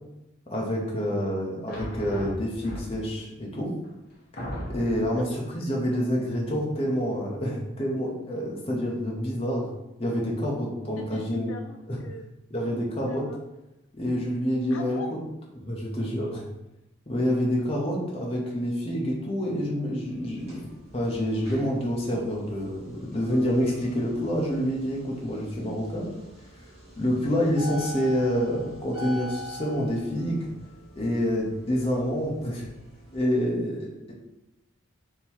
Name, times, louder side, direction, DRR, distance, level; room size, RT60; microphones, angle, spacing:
voice 1, 0.5-3.7 4.7-9.7 10.0-11.5 11.9-12.0 12.5-13.3 13.9-15.0 15.6-16.4 17.1-20.6 20.9-26.1 27.0-30.5 31.0-32.6 33.1-34.1, equal, 30° left, -3 dB, 0.9 m, -27 dB
sound 1, 1.7-3.2 3.8-3.9 4.4-5.2, equal, 45° left, 1.1 m, -36 dB
voice 2, 11.0-12.3 12.6-13.4 14.7-15.1, left 2 dB, 70° left, 3 dB, 0.4 m, -40 dB
sound 2, 20.1-33.2, left 1 dB, 30° right, 1.3 m, -44 dB
3.7 x 3.0 x 4.5 m, 0.92 s
head